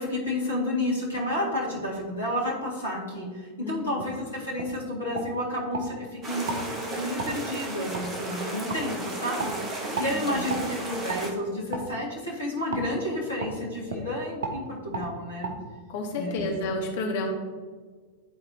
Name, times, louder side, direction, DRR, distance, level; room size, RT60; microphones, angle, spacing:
voice 1, 0.0-15.5 16.1-16.5, left 1 dB, 70° left, -3 dB, 1.7 m, -31 dB
voice 2, 3.6-4.0 10.1-10.5 15.9-17.3, left 2 dB, 55° left, 2 dB, 1.1 m, -31 dB
sound 1, 4.0-4.1 4.6-4.7 5.1-5.9 6.4-6.6 7.2-7.3 7.9-8.1 8.7-8.8 9.4-9.5 9.9-10.1 10.5-10.7 11.1-11.2 11.7-11.9 12.7-12.9 13.4-13.5 13.9-14.0 14.4-14.6 14.9-15.1 15.4-15.5, right 3 dB, 60° right, 1.0 m, -33 dB
sound 2, 6.2-11.3, right 2 dB, 25° right, 1.1 m, -34 dB
11.0 x 4.1 x 2.7 m, 1.5 s
figure-of-eight pair, 90°, 0 cm